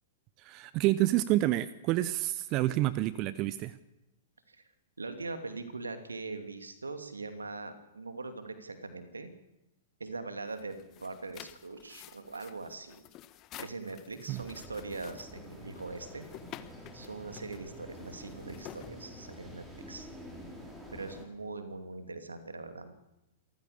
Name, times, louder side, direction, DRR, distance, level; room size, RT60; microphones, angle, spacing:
voice 1, 0.4-3.7 14.3-14.4, right 15 dB, 40° right, 16 dB, 0.9 m, -28 dB
voice 2, 5.0-9.3 10.0-13.0 13.6-16.3 16.9-20.1 20.9-22.9, right 3 dB, 85° right, 8 dB, 2.6 m, -41 dB
sound 1, 10.5-19.6, left 13 dB, 35° left, 1.2 m, -51 dB
sound 2, 14.3-21.3, equal, 10° right, 6.2 m, -48 dB
26.5 x 14.5 x 6.8 m, 0.94 s
figure-of-eight pair, 105°, 0 cm